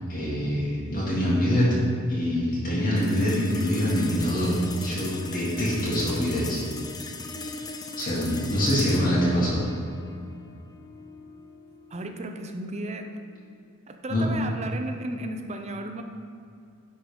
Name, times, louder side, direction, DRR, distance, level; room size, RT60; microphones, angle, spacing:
voice 1, 0.1-1.7 2.1-6.6 8.0-9.6 14.1-14.3, equal, 40° left, -8 dB, 1.8 m, -24 dB
sound 1, 3.0-13.6, left 3 dB, 20° left, 0.4 m, -39 dB
voice 2, 11.9-13.1 13.9-16.0, right 1 dB, 30° right, 5 dB, 0.6 m, -34 dB
10.5 x 3.8 x 5.1 m, 2.5 s
head